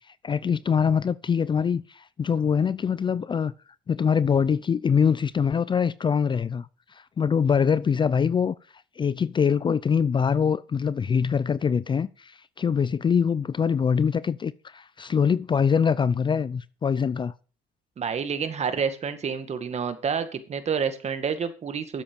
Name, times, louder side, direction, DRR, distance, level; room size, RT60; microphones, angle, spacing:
voice 1, 0.2-3.5 3.9-8.6 9.0-17.3, left 6 dB, 30° left, 0.5 m, -24 dB
voice 2, 18.0-22.0, right 6 dB, 40° right, 2.0 m, -28 dB
12.0 x 7.9 x 6.9 m
cardioid pair, 110°, 17 cm